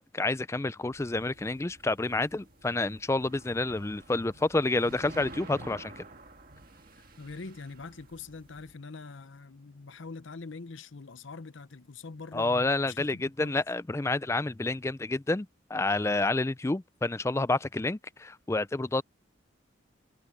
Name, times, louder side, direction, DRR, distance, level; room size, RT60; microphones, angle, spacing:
voice 1, 0.0-6.0 12.3-19.0, left 2 dB, 15° left, 0.3 m, -29 dB
sound 1, 0.9-8.8, right 2 dB, 45° right, 1.9 m, -50 dB
voice 2, 7.2-13.6, left 4 dB, 80° left, 0.8 m, -44 dB
head